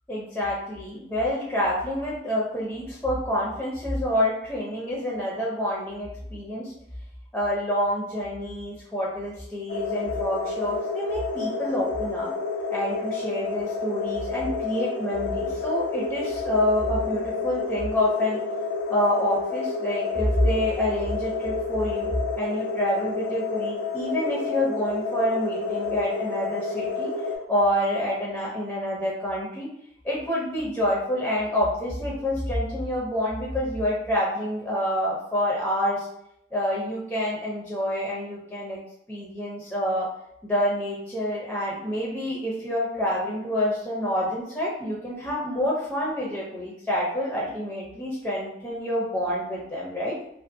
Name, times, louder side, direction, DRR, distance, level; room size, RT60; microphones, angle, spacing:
voice 1, 0.1-6.7 7.3-12.3 12.7-18.4 18.9-27.1 27.5-29.7 30.0-36.1 36.5-38.8 39.1-40.1 40.4-50.2, equal, 5° left, -5 dB, 0.4 m, -27 dB
sound 1, 9.7-27.4, left 4 dB, 85° left, 0.4 m, -30 dB
2.5 x 2.3 x 2.5 m, 0.76 s
head